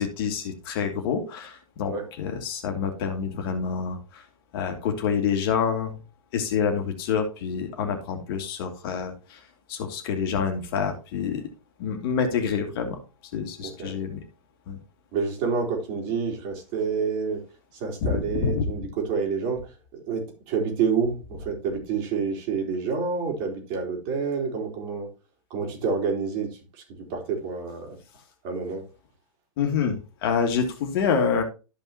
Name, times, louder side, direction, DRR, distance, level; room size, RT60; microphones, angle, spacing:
voice 1, 0.0-4.2 4.5-6.0 6.3-9.4 9.7-11.5 11.8-13.0 13.3-14.2 14.7-14.8 18.0-18.7 29.6-31.4, left 6 dB, 45° left, 2.5 m, -27 dB
voice 2, 15.1-17.4 17.8-19.7 20.1-25.1 25.5-26.6 27.1-27.9 28.4-28.8, right 5 dB, 40° right, 3.8 m, -28 dB
13.5 x 5.5 x 2.9 m
figure-of-eight pair, 105°, 17 cm